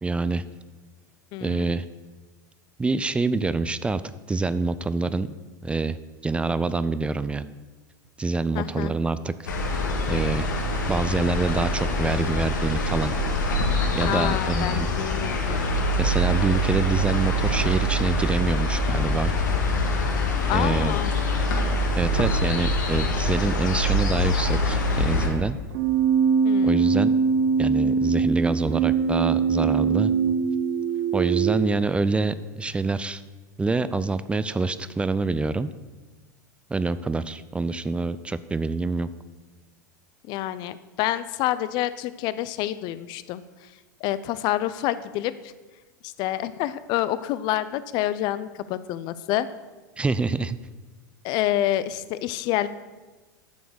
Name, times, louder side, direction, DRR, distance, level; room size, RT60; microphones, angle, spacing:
voice 1, 0.0-0.4 1.4-1.8 2.8-4.0 4.3-5.4 5.6-6.0 6.2-7.5 8.2-9.5 10.1-10.5 10.9-13.1 14.0-14.9 16.0-19.3 20.5-21.0 22.0-25.6 26.6-27.1 27.6-30.1 31.1-33.2 33.6-35.7 36.7-39.1 50.0-50.6, right 3 dB, 10° right, 15 dB, 0.4 m, -26 dB
voice 2, 1.3-1.7 8.5-8.9 14.0-15.6 20.5-21.1 26.4-27.0 40.3-43.4 44.0-45.5 46.0-49.5 51.2-52.7, left 13 dB, 45° left, 15 dB, 0.6 m, -28 dB
sound 1, 9.5-25.3, left 1 dB, 75° left, 1.8 m, -24 dB
Keyboard (musical), 25.7-31.7, right 6 dB, 50° right, 0.8 m, -22 dB
9.3 x 7.1 x 6.5 m, 1.2 s
figure-of-eight pair, 90°, 10 cm